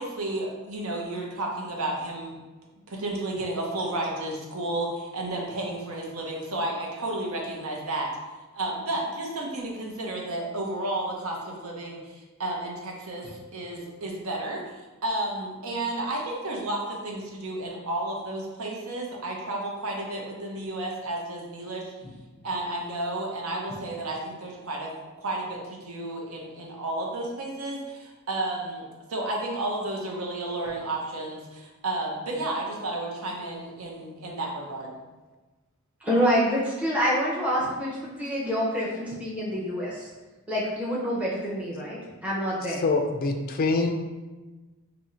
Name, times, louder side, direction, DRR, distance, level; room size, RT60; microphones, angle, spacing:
voice 1, 0.0-2.4 2.9-8.1 8.5-21.9 22.4-24.9 25.2-28.8 29.1-35.0, right 2 dB, 75° right, -1 dB, 0.8 m, -32 dB
voice 2, 36.0-40.1 40.5-42.8, equal, 5° right, -6 dB, 0.6 m, -27 dB
voice 3, 42.8-43.9, left 3 dB, 40° left, 4 dB, 0.3 m, -24 dB
2.7 x 2.6 x 4.2 m, 1.2 s
head